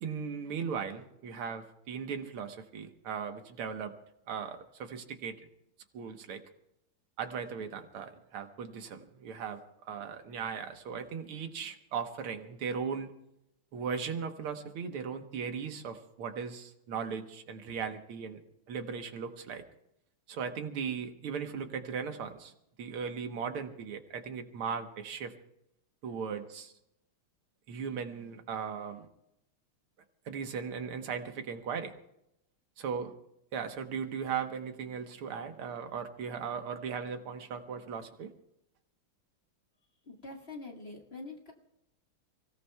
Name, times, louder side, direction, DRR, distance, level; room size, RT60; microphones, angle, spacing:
voice 1, 0.0-3.9 4.3-5.4 5.9-6.4 7.2-13.1 13.7-18.4 18.7-19.6 20.3-22.5 22.8-25.3 26.0-26.7 27.7-29.1 30.3-31.9 32.8-33.1 33.5-38.3, right 6 dB, 80° right, 6 dB, 2.1 m, -37 dB
voice 2, 40.0-41.5, left 3 dB, 30° left, 0 dB, 1.6 m, -45 dB
30.0 x 17.0 x 2.3 m, 0.83 s
omnidirectional pair, 2.4 m